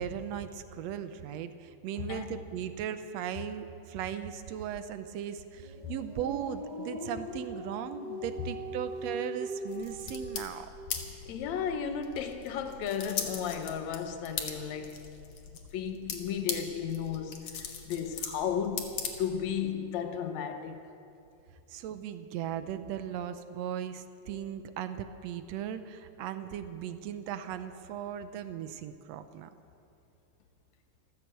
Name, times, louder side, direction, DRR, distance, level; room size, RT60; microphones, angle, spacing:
voice 1, 0.0-10.7 21.7-29.5, right 9 dB, 75° right, 1.7 m, -37 dB
voice 2, 2.0-2.3 5.8-5.9 11.3-15.1 15.5-20.8, left 7 dB, 75° left, 2.2 m, -34 dB
sound 1, 5.6-10.4, equal, 35° right, 0.7 m, -40 dB
sound 2, 9.7-19.6, left 6 dB, 55° left, 2.0 m, -40 dB
14.5 x 13.0 x 7.6 m
omnidirectional pair, 3.4 m